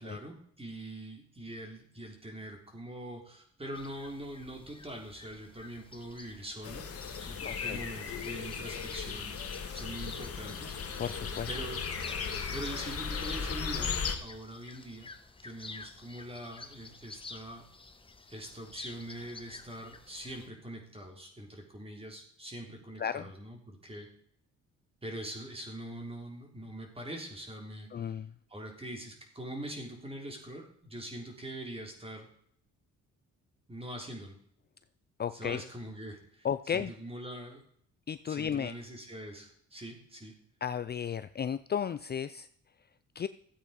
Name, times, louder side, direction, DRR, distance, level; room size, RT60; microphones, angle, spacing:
voice 1, 0.0-6.8 7.2-9.3 9.7-10.8 11.5-11.8 12.5-13.9 14.2-15.1 15.4-17.6 18.3-24.1 25.0-28.1 28.5-32.3 33.7-34.4 35.3-36.5 36.7-37.6 38.3-40.3, right 1 dB, 20° right, 2 dB, 3.8 m, -43 dB
sound 1, 3.7-20.5, left 3 dB, 15° left, 1.3 m, -51 dB
sound 2, 6.6-14.2, left 6 dB, 50° left, 2.1 m, -36 dB
voice 2, 7.4-7.8 11.0-11.5 23.0-23.3 27.9-28.3 35.2-35.6 36.4-36.9 38.1-38.7 40.6-42.5 43.2-43.3, left 8 dB, 35° left, 13 dB, 0.5 m, -34 dB
14.0 x 8.5 x 5.3 m, 0.62 s
cardioid pair, 90°, 30 cm